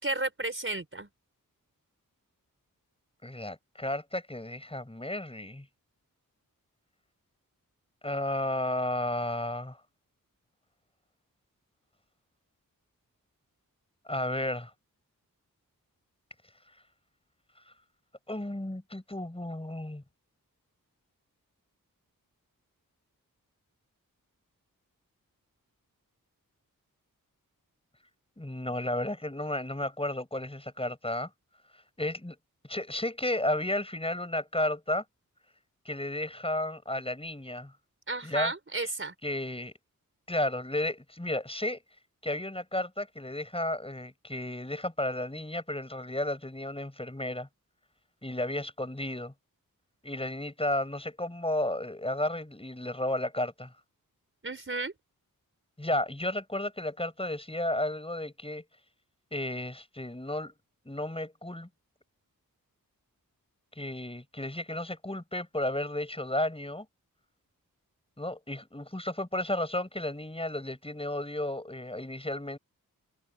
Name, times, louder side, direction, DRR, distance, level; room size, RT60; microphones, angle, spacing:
voice 1, 0.0-1.1 38.1-39.1 54.4-54.9, right 2 dB, 35° right, 4.6 m, -33 dB
voice 2, 3.2-5.7 8.0-9.8 14.1-14.7 18.3-20.0 28.4-31.3 32.0-32.4 32.7-35.0 35.9-37.7 38.2-38.5 39.2-39.7 40.3-41.8 42.2-47.5 48.2-49.3 50.0-53.7 55.8-58.6 59.3-60.5 60.9-61.7 63.8-66.9 68.2-72.6, left 1 dB, 15° left, 7.5 m, -33 dB
wide cardioid pair, 75°, 35 cm